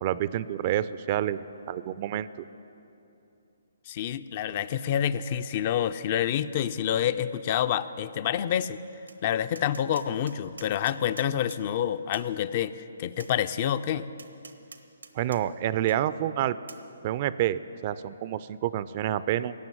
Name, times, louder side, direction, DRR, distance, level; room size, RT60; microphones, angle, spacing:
voice 1, 0.0-2.3 15.1-16.6 17.0-19.5, right 12 dB, 35° right, 16 dB, 0.4 m, -28 dB
voice 2, 3.9-8.8 9.2-14.1, left 10 dB, 40° left, 13 dB, 0.4 m, -28 dB
Tap, 9.1-9.2 9.5-11.6 12.1-12.3 13.2-13.3 14.2-15.4 15.9-16.0 16.7-16.8, right 4 dB, 85° right, 1.0 m, -47 dB
16.5 x 7.0 x 9.4 m, 2.8 s
hypercardioid pair, 145°, 0 cm